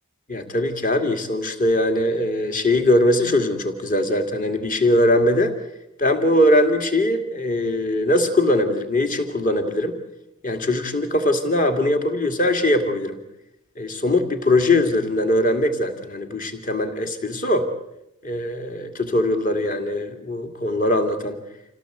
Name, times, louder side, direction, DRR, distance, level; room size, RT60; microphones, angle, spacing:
voice 1, 0.3-5.5 6.0-9.9 10.4-13.2 13.8-17.7 18.2-21.4, left 1 dB, 35° left, 7 dB, 2.5 m, -21 dB
27.5 x 17.0 x 8.2 m, 0.85 s
head